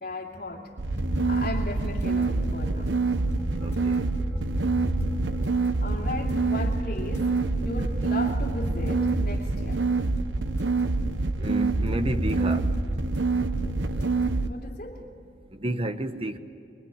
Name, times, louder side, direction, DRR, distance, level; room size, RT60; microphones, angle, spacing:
voice 1, 0.0-0.7 1.2-3.0 5.8-9.8 14.5-15.1, left 2 dB, 55° left, -5 dB, 2.6 m, -36 dB
sound 1, 0.8-14.5, left 1 dB, 15° left, 4.8 m, -36 dB
sound 2, 0.8-14.5, right 3 dB, 85° right, 1.0 m, -26 dB
voice 2, 3.6-4.0 11.4-12.7 15.6-16.4, right 1 dB, 30° right, 9 dB, 1.2 m, -30 dB
24.0 x 23.5 x 9.7 m, 2.6 s
head